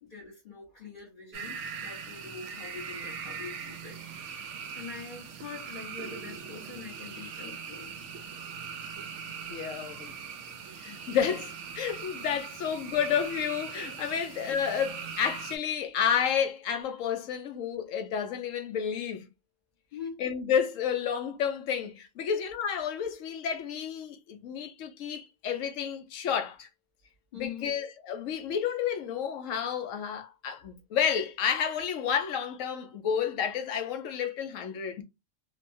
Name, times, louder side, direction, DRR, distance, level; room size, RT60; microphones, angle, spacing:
voice 1, 0.1-7.9 12.2-12.3 14.2-14.3 19.9-20.2 27.3-27.7, left 6 dB, 40° left, 1.2 m, -44 dB
sound 1, 1.3-15.6, right 6 dB, 70° right, 0.9 m, -41 dB
voice 2, 9.5-10.1 10.8-19.3 20.2-26.7 27.3-35.0, left 8 dB, 80° left, 1.0 m, -30 dB
3.1 x 2.2 x 2.5 m
omnidirectional pair, 1.3 m